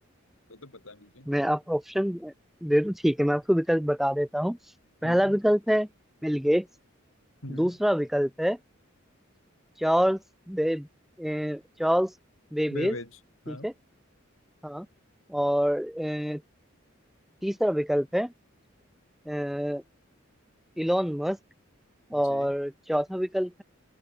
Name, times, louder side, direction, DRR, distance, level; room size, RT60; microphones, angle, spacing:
voice 1, 0.5-1.3 5.0-5.4 7.4-7.8 12.7-13.7 22.1-22.5, left 1 dB, 90° left, 8.0 m, -42 dB
voice 2, 1.3-2.3 2.6-4.6 5.0-5.9 6.2-6.7 7.5-8.6 9.8-10.2 10.5-10.9 11.2-12.1 12.5-12.9 13.5-13.7 14.6-14.9 15.3-16.4 17.4-18.3 19.3-19.8 20.8-21.4 22.1-23.6, equal, ahead, 0.5 m, -26 dB
open air
head